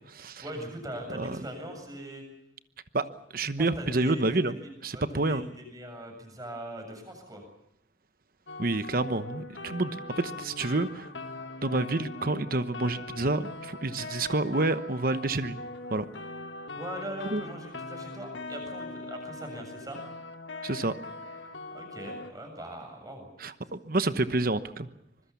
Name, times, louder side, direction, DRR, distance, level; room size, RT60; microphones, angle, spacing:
voice 1, 0.4-2.2 3.6-7.4 14.2-14.4 16.8-20.0 21.7-23.3, equal, 20° right, 4 dB, 7.4 m, -41 dB
voice 2, 3.3-4.5 4.8-5.5 8.6-11.1 11.6-15.6 15.9-16.0 17.3-17.4 20.6-20.9 23.4-24.9, right 2 dB, 50° right, 11 dB, 1.0 m, -28 dB
sound 1, 8.5-22.3, left 2 dB, 80° left, 1.8 m, -41 dB
25.5 x 22.0 x 7.1 m, 0.78 s
head